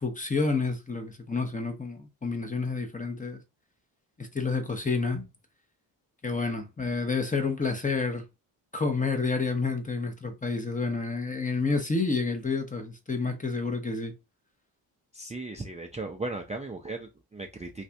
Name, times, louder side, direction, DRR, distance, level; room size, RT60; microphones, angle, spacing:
voice 1, 0.0-3.4 4.2-5.2 6.2-8.2 8.7-14.1, left 4 dB, 15° left, 0.8 m, -29 dB
voice 2, 15.1-17.8, right 2 dB, 15° right, 0.5 m, -37 dB
2.6 x 2.5 x 3.3 m
hypercardioid pair, 45°, 50 cm